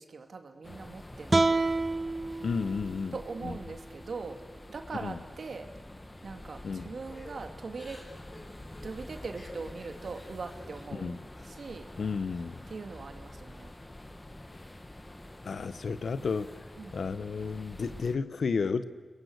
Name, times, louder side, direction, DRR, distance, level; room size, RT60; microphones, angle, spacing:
voice 1, 0.0-1.6 3.1-4.4 4.7-5.7 6.2-8.0 8.8-11.2 11.4-11.9 12.7-13.7 16.8-17.0, right 4 dB, 70° right, 6 dB, 2.5 m, -41 dB
sound 1, 0.6-18.2, left 1 dB, 25° left, 2.0 m, -47 dB
sound 2, 1.3-4.5, right 3 dB, 35° right, 1.2 m, -30 dB
voice 2, 2.4-3.2 3.4-3.5 5.0-5.2 6.6-6.9 10.9-11.2 12.0-12.5 15.4-16.5 16.9-18.8, left 5 dB, 75° left, 14 dB, 1.1 m, -32 dB
Crying sobbing / Breathing, 7.1-11.7 12.1-13.1 13.5-14.2, left 1 dB, 40° left, 5.8 m, -54 dB
30.0 x 21.5 x 8.1 m, 1.5 s
cardioid pair, 60°, 0 cm